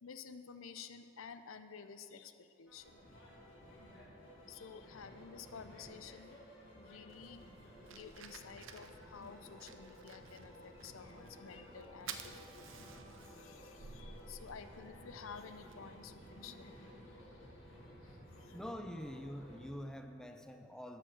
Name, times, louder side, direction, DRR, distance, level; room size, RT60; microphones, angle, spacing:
voice 1, 0.0-3.0 4.5-7.4 7.9-13.0 13.3-16.8 18.0-18.6, left 6 dB, 80° left, 10 dB, 0.6 m, -52 dB
sound 1, 2.7-19.7, equal, 65° left, 2.4 m, -56 dB
sound 2, 2.8-17.7, left 1 dB, 45° left, 2.7 m, -61 dB
Fire, 7.1-16.8, right 6 dB, 70° right, 0.6 m, -54 dB
voice 2, 18.5-21.0, equal, 5° left, 6 dB, 0.5 m, -45 dB
12.5 x 5.5 x 7.3 m, 2.7 s
head